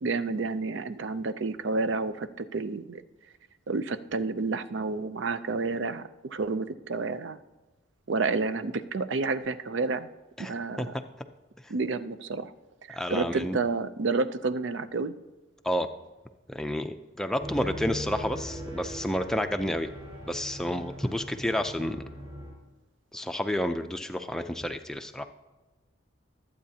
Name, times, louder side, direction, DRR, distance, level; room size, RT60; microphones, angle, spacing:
voice 1, 0.0-3.0 3.7-7.4 8.1-10.1 10.4-11.0 11.7-12.5 12.8-15.1, right 3 dB, 60° right, 13 dB, 0.5 m, -30 dB
voice 2, 12.9-13.6 15.6-15.9 16.5-19.9 20.3-22.0 23.1-25.2, equal, 5° left, 6 dB, 0.4 m, -30 dB
sound 1, 17.4-22.5, equal, 25° right, 4.6 m, -40 dB
21.0 x 8.4 x 2.8 m, 1.2 s
head